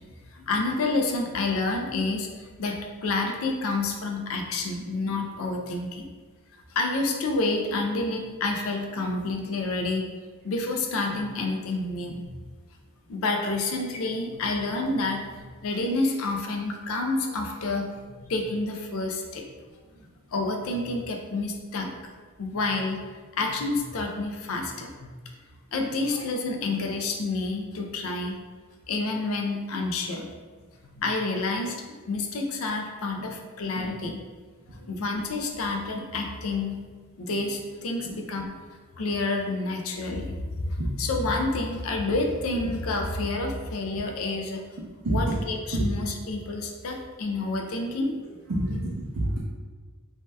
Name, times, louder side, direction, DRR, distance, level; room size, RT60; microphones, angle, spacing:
voice 1, 0.3-6.1 6.7-10.1 10.4-12.3 13.1-19.5 20.3-21.9 22.4-23.0 23.3-24.9 25.7-28.4 28.9-30.3 30.9-34.2 34.7-36.8 37.2-38.5 39.0-44.6 45.1-48.4, left 2 dB, 65° left, 2 dB, 0.4 m, -29 dB
voice 2, 48.5-49.4, right 1 dB, 80° right, -7 dB, 0.6 m, -27 dB
2.7 x 2.2 x 3.2 m, 1.4 s
head